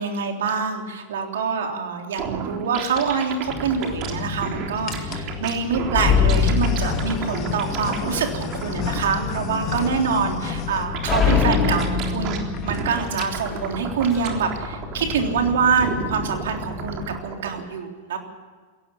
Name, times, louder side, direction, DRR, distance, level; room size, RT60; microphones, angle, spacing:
voice 1, 0.0-18.2, right 5 dB, 70° right, 3 dB, 3.5 m, -25 dB
sound 1, 2.2-17.6, right 6 dB, 40° right, 3.5 m, -33 dB
sound 2, 3.0-3.1 3.9-4.4 4.9-5.3 6.0-11.5 11.7-11.9 12.2-12.3 12.5-12.8 13.1-13.6, left 6 dB, 40° left, 2.5 m, -32 dB
sound 3, 3.5-17.2, left 6 dB, 20° left, 4.3 m, -27 dB
22.0 x 17.5 x 7.1 m, 1.5 s
figure-of-eight pair, 95°, 0 cm